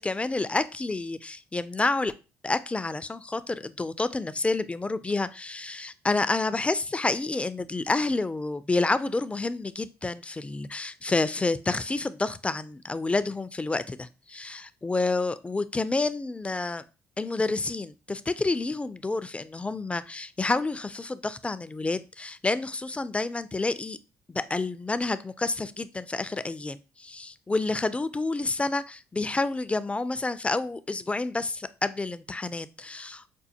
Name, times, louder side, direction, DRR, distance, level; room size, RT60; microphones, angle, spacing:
voice 1, 0.0-2.1 2.4-16.8 17.2-24.0 24.3-33.3, left 3 dB, 20° left, 14 dB, 0.3 m, -29 dB
5.3 x 2.2 x 2.8 m, 0.32 s
supercardioid pair, 60°, 7 cm